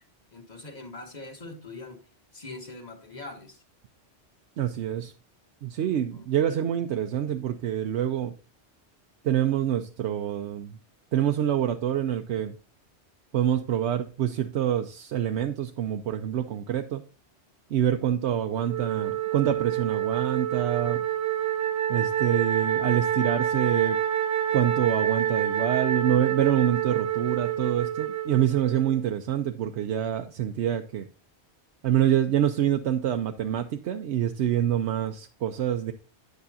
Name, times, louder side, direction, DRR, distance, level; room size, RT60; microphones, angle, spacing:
voice 1, 0.3-2.0 2.3-3.6 6.1-6.3, left 2 dB, 40° left, 1.5 m, -42 dB
voice 2, 4.6-5.1 5.6-8.3 9.2-10.8 11.1-12.5 13.3-17.0 17.7-21.0 21.9-24.0 24.5-31.1 31.8-35.9, right 10 dB, 85° right, 0.9 m, -26 dB
Wind instrument woodwind instrument, 18.7-29.0, right 10 dB, 60° right, 0.7 m, -27 dB
9.7 x 8.1 x 2.7 m
omnidirectional pair, 1.1 m